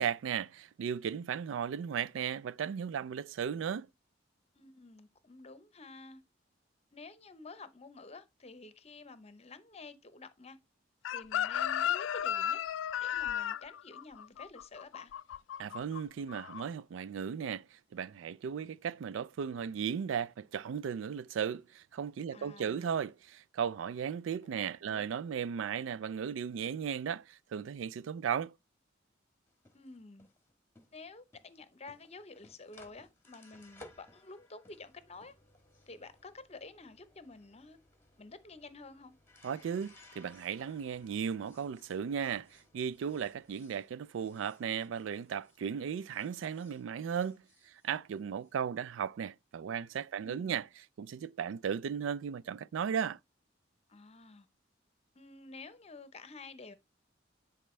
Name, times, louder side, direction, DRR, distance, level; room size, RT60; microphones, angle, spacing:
voice 1, 0.0-3.9 15.6-28.5 39.4-50.7 51.0-53.2, right 7 dB, 90° right, 0.3 m, -36 dB
voice 2, 4.5-6.2 6.9-10.6 11.1-12.6 13.0-15.1 22.3-22.9 24.9-25.1 29.7-30.3 30.9-35.3 35.9-37.8 38.2-39.1 50.2-50.6 53.9-54.5 55.1-56.7, left 3 dB, 35° left, 0.8 m, -50 dB
Chicken rooster, 11.0-16.0 16.3-16.6, left 10 dB, 75° left, 0.3 m, -34 dB
sound 1, 29.5-45.7 45.9-48.5, left 2 dB, 15° left, 1.3 m, -61 dB
10.0 x 4.3 x 3.2 m
head